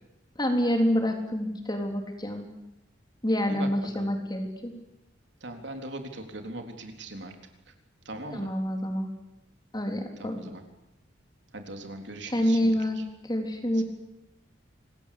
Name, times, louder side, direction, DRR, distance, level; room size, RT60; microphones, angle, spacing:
voice 1, 0.4-2.5 3.2-4.7 8.3-9.1 9.7-10.4 12.3-13.0 13.2-13.8, equal, 20° left, 4 dB, 3.8 m, -27 dB
voice 2, 3.5-4.1 5.4-7.4 8.1-8.5 10.2-10.6 11.5-13.0 13.7-13.8, right 1 dB, 60° right, 5 dB, 3.8 m, -40 dB
27.0 x 20.0 x 8.6 m, 0.90 s
head